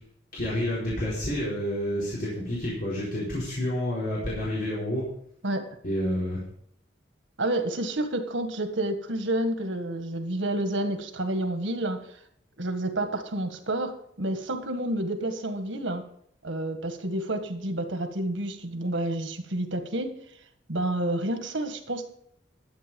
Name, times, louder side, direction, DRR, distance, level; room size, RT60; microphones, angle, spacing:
voice 1, 0.3-5.1 5.8-6.4, left 1 dB, 55° left, -7 dB, 4.4 m, -29 dB
voice 2, 7.4-12.0 12.6-13.9 14.2-16.0 16.4-20.1 20.7-22.1, right 1 dB, 85° right, 7 dB, 1.7 m, -29 dB
12.5 x 8.3 x 5.3 m, 0.67 s
head